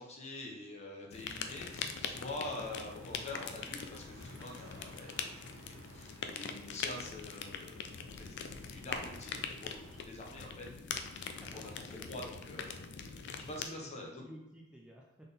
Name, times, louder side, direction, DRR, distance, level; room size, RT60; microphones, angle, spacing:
voice 1, 0.0-12.8 13.5-14.3, left 2 dB, 35° left, -1 dB, 0.9 m, -46 dB
sound 1, 1.1-13.6, left 6 dB, 60° left, 0.4 m, -43 dB
sound 2, 1.4-10.0, right 2 dB, 85° right, 0.7 m, -58 dB
voice 2, 11.4-12.1 13.4-15.2, right 1 dB, 5° right, -2 dB, 0.4 m, -54 dB
4.1 x 3.7 x 3.5 m, 0.94 s
head